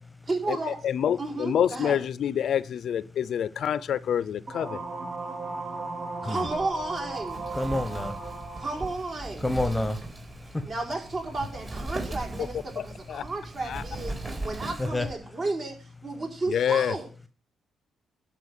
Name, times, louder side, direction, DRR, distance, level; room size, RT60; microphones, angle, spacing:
voice 1, 0.3-0.8 1.2-2.0 6.2-7.4 8.6-9.5 10.6-17.1, right 2 dB, 45° right, 1 dB, 4.6 m, -33 dB
voice 2, 0.8-4.8 12.8-13.2 13.7-13.8 16.5-16.9, left 9 dB, 65° left, 18 dB, 0.6 m, -27 dB
sound 1, 4.5-9.0, right 3 dB, 65° right, 4.8 m, -36 dB
Wind, 6.5-15.1, right 2 dB, 30° right, 4.2 m, -39 dB
voice 3, 7.5-8.2 9.4-10.0 10.5-10.7 14.8-15.1, left 1 dB, 10° left, 11 dB, 1.1 m, -28 dB
11.5 x 5.8 x 8.3 m, 0.37 s
cardioid pair, 90°, 0 cm